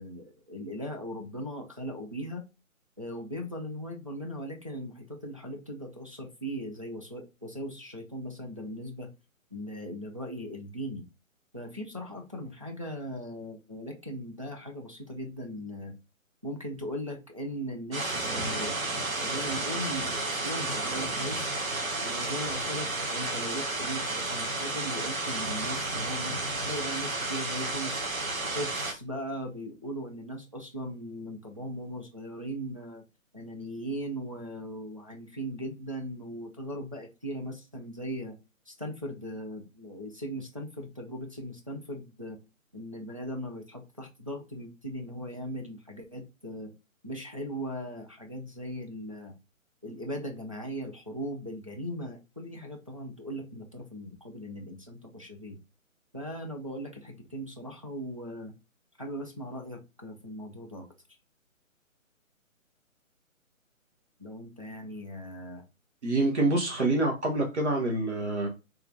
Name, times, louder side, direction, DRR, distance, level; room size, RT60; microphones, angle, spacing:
voice 1, 0.0-2.4 3.0-9.1 9.5-11.0 11.5-15.9 16.4-18.8 19.2-21.5 22.0-28.1 28.5-33.0 33.3-38.4 38.7-42.4 42.7-46.7 47.0-49.3 49.8-55.6 56.1-58.5 59.0-60.9 64.2-65.6, equal, 25° right, 0.4 m, -38 dB
sound 1, 17.9-28.9, right 2 dB, 75° right, 1.2 m, -32 dB
voice 2, 66.0-68.5, right 2 dB, 55° right, 1.1 m, -26 dB
3.5 x 3.3 x 2.6 m
figure-of-eight pair, 140°, 41 cm